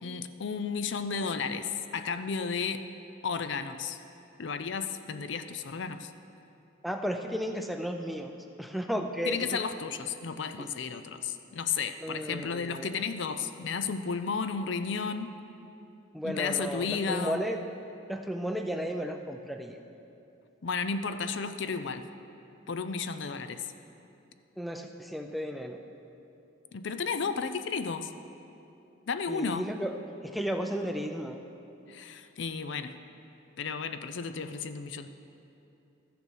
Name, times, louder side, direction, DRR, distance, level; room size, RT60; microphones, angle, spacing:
voice 1, 0.0-2.8 3.2-4.0 4.4-6.1 9.3-15.4 16.2-17.4 20.6-22.1 22.7-23.7 26.7-28.1 29.1-29.7 31.9-32.9 33.6-35.1, left 5 dB, 65° left, 10 dB, 0.5 m, -33 dB
voice 2, 6.8-9.6 10.6-10.7 12.0-12.9 16.1-17.6 18.1-19.8 24.6-25.8 29.3-29.9 30.2-31.4, equal, ahead, 4 dB, 0.4 m, -34 dB
13.5 x 6.9 x 6.4 m, 2.8 s
head